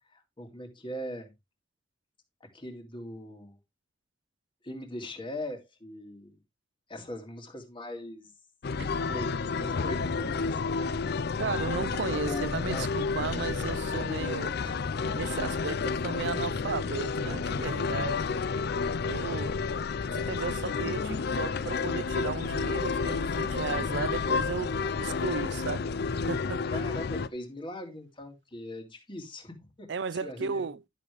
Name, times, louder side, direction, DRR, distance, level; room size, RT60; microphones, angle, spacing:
voice 1, 0.1-1.3 2.5-3.6 4.6-6.3 6.9-8.3 9.1-10.9 12.1-12.9 14.6-14.9 26.7-29.9 30.2-30.7, left 1 dB, 25° left, 2.0 m, -40 dB
sound 1, 8.6-27.3, left 4 dB, 60° left, 0.5 m, -30 dB
voice 2, 8.8-9.1 11.4-14.6 15.1-15.8 16.0-18.3 19.0-19.6 20.1-25.8 26.1-26.8 29.9-30.8, right 5 dB, 65° right, 0.5 m, -35 dB
11.0 x 6.8 x 3.2 m
head